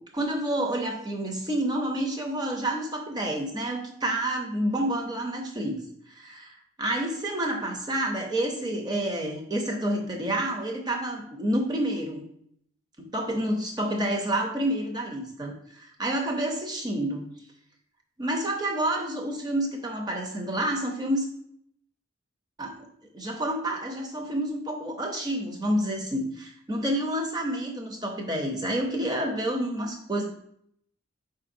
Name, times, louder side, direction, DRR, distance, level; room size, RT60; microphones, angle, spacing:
voice 1, 0.1-5.8 6.2-12.2 13.0-17.3 18.2-21.3 22.6-22.9 23.1-26.3 26.7-30.2, right 1 dB, 20° right, 1 dB, 0.6 m, -29 dB
4.7 x 3.8 x 2.6 m, 0.69 s
head